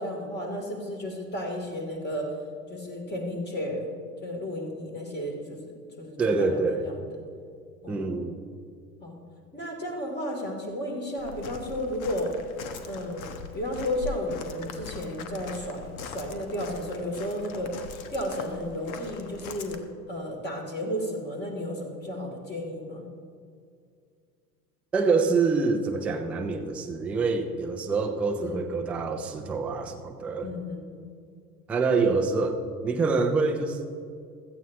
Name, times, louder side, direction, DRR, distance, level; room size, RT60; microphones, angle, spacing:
voice 1, 0.0-2.3 2.7-3.9 4.2-7.0 7.8-8.1 9.0-9.2 9.5-12.3 12.9-13.3 13.5-17.7 18.1-19.8 20.1-23.0 28.4-28.6 30.4-30.8, left 1 dB, 20° left, 1 dB, 2.8 m, -33 dB
voice 2, 6.2-6.9 7.9-8.4 24.9-30.5 31.7-33.8, right 4 dB, 5° right, 3 dB, 0.3 m, -26 dB
Walk footsteps, 11.2-19.8, left 5 dB, 60° left, 1.2 m, -41 dB
16.0 x 13.0 x 2.8 m, 2.3 s
figure-of-eight pair, 80°, 47 cm